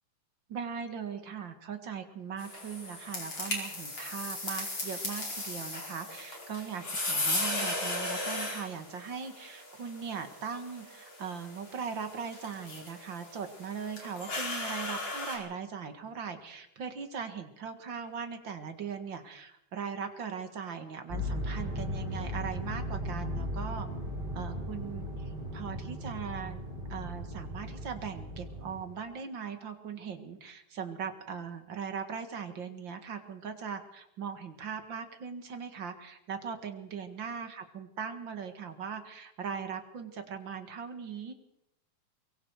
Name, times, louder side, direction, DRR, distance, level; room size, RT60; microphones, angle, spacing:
voice 1, 0.5-23.9 24.3-26.6 26.9-41.3, right 6 dB, 45° right, 8 dB, 1.8 m, -39 dB
sound 1, 2.4-15.4, left 2 dB, 35° left, 5.6 m, -37 dB
sound 2, 21.1-28.8, equal, 10° right, 5.6 m, -37 dB
23.5 x 23.5 x 4.8 m, 0.77 s
omnidirectional pair, 4.3 m